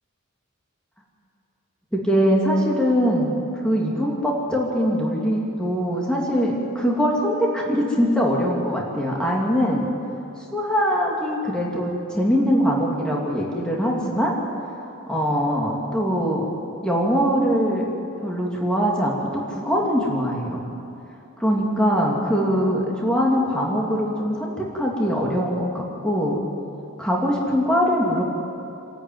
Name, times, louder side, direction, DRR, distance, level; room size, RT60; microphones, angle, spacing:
voice 1, 1.9-9.9 10.5-14.3 15.1-16.5 16.8-17.9 18.2-20.6 21.4-26.4 27.0-28.2, equal, 5° left, -3 dB, 2.6 m, -22 dB
27.0 x 13.5 x 9.3 m, 2.8 s
head